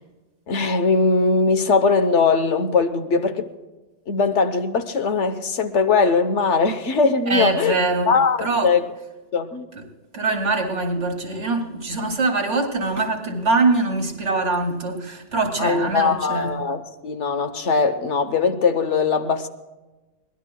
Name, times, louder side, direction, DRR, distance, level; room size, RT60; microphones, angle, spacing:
voice 1, 0.5-3.5 4.1-7.8 8.1-8.8 9.3-9.7 15.6-19.5, left 4 dB, 80° left, 1.3 m, -20 dB
voice 2, 7.3-8.8 9.7-9.9 10.1-16.6, right 3 dB, 75° right, 2.7 m, -23 dB
23.0 x 19.0 x 2.3 m
omnidirectional pair, 1.2 m